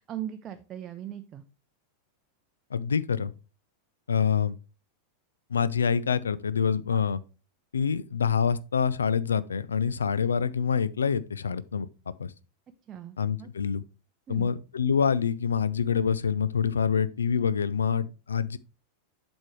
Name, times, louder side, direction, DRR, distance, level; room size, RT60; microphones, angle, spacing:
voice 1, 0.0-1.4 6.9-7.0 12.9-13.5 14.3-14.5, right 10 dB, 30° right, 0.6 m, -39 dB
voice 2, 2.7-3.3 4.1-4.6 5.5-7.2 7.7-11.9 12.2-12.3 13.2-13.8 14.3-18.6, left 6 dB, 70° left, 0.4 m, -26 dB
8.1 x 6.2 x 3.1 m
figure-of-eight pair, 90°, 0 cm